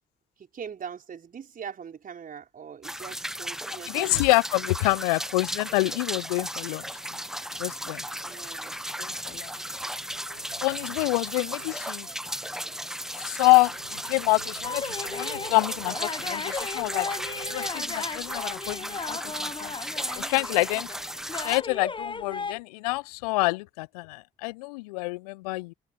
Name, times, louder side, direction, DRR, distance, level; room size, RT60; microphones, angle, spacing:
voice 1, 0.4-4.3 8.2-8.8 9.5-9.9 12.6-12.9, right 7 dB, 45° right, 5.0 m, -42 dB
sound 1, 2.8-21.6, equal, ahead, 1.2 m, -35 dB
voice 2, 3.9-6.8 7.6-8.0 9.0-9.5 10.6-12.1 13.2-13.8 14.0-19.7 20.2-20.9 21.4-25.7, left 24 dB, 70° left, 1.1 m, -27 dB
sound 2, 5.2-17.7, right 5 dB, 85° right, 4.7 m, -51 dB
sound 3, 14.6-22.5, left 4 dB, 25° left, 1.2 m, -36 dB
figure-of-eight pair, 45°, 20 cm